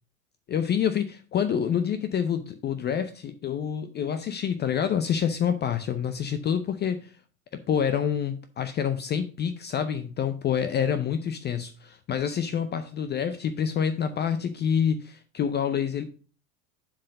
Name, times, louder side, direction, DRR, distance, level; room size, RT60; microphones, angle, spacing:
voice 1, 0.5-7.1 7.7-16.0, left 8 dB, 25° left, 10 dB, 0.5 m, -27 dB
7.3 x 4.7 x 5.0 m, 0.38 s
hypercardioid pair, 95°, 43 cm